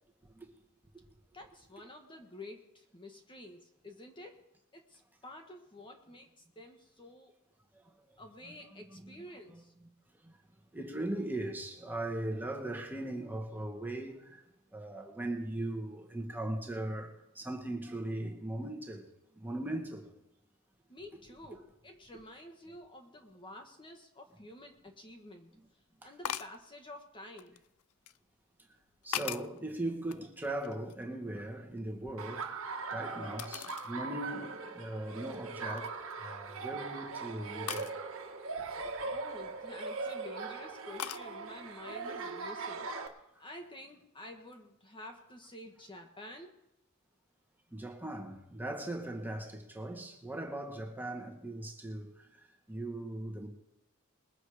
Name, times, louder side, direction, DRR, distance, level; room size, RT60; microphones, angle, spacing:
voice 1, 1.3-4.4 4.7-7.4 8.2-9.7 20.9-25.5 26.0-27.6 39.0-42.9 43.4-46.5, left 1 dB, 25° left, 1.4 m, -50 dB
voice 2, 8.4-9.1 9.5-9.9 10.2-10.3 10.7-14.4 14.7-19.0 19.4-20.0 26.0-26.1 29.0-32.4 32.9-37.9 47.7-52.1 52.7-53.5, right 1 dB, 10° right, 1.8 m, -39 dB
sound 1, 24.8-24.9 26.2-26.6 27.4-28.2 28.8-29.6 30.1-31.1 31.4-32.7 33.4-33.9 34.4-34.5 35.1-35.4 35.7-36.1 37.7-37.9 39.6-40.1 41.0-41.3, left 10 dB, 85° left, 0.5 m, -41 dB
Laughter, 32.2-43.1, right 4 dB, 65° right, 1.7 m, -40 dB
21.5 x 7.6 x 5.0 m
head